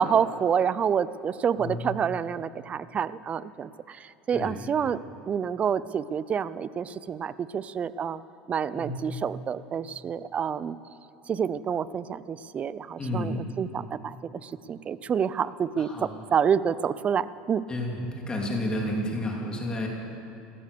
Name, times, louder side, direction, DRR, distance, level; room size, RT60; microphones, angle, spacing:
voice 1, 0.0-5.0 5.3-8.2 8.5-10.8 11.3-14.2 14.4-17.6, right 7 dB, 30° right, 17 dB, 0.5 m, -28 dB
voice 2, 1.6-1.9 4.3-4.6 8.7-9.0 13.0-13.5 15.8-16.2 17.7-19.9, left 1 dB, 20° left, -1 dB, 2.9 m, -31 dB
15.0 x 13.5 x 6.8 m, 2.9 s
supercardioid pair, 105°, 4 cm